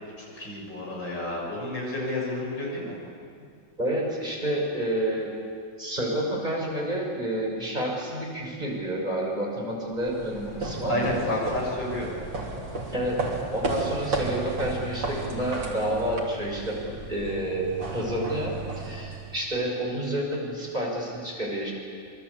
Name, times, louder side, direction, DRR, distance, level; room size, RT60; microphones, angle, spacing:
voice 1, 0.2-3.0 10.9-12.1, left 1 dB, 65° left, -3 dB, 8.1 m, -30 dB
voice 2, 3.8-5.3 5.8-11.1 12.9-21.7, right 1 dB, 20° right, -2 dB, 6.5 m, -29 dB
sound 1, 10.0-19.6, right 3 dB, 75° right, 4.0 m, -34 dB
27.5 x 23.5 x 8.5 m, 2.2 s
omnidirectional pair, 2.1 m